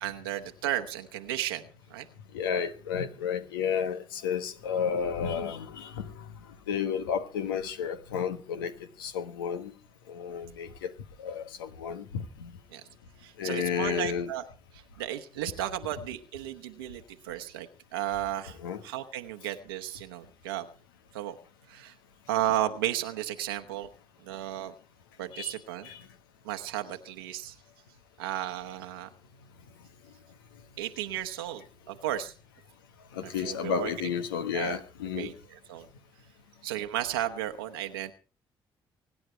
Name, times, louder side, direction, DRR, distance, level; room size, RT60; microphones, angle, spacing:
voice 1, 0.0-2.1 12.7-12.8 13.2-14.4 15.0-18.6 18.8-20.7 21.1-21.4 21.7-21.9 22.3-23.9 24.2-24.7 25.2-25.9 26.4-27.5 28.2-29.1 30.8-32.3 33.2-33.9 34.5-34.8 35.1-35.9 36.6-38.1, right 12 dB, 90° right, 1.0 m, -34 dB
voice 2, 2.3-6.3 6.7-9.7 10.1-10.9 11.2-12.5 13.4-14.3 18.6-18.8 25.3-26.1 33.1-35.3, left 7 dB, 90° left, 1.3 m, -32 dB
24.5 x 9.9 x 4.5 m
hypercardioid pair, 45°, 12 cm